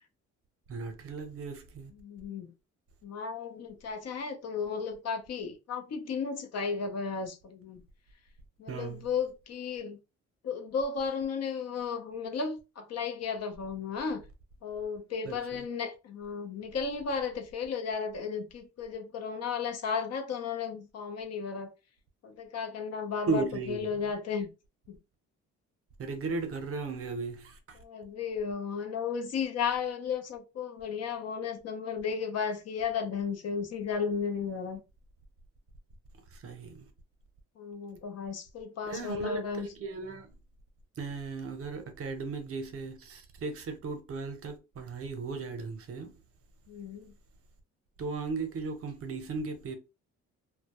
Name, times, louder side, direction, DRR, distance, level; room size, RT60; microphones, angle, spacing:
voice 1, 0.7-1.9 8.7-9.0 15.2-15.6 23.3-23.9 26.0-27.8 36.3-36.9 38.8-40.3 41.0-46.2 48.0-49.8, right 4 dB, 50° right, 0.7 m, -36 dB
voice 2, 2.0-2.5 3.0-7.8 8.6-10.0 10.4-14.2 14.6-21.7 22.2-24.5 24.9-25.0 27.8-34.8 37.6-39.7 46.7-47.1, left 6 dB, 55° left, 0.6 m, -34 dB
2.1 x 2.1 x 2.9 m
cardioid pair, 90°, 30 cm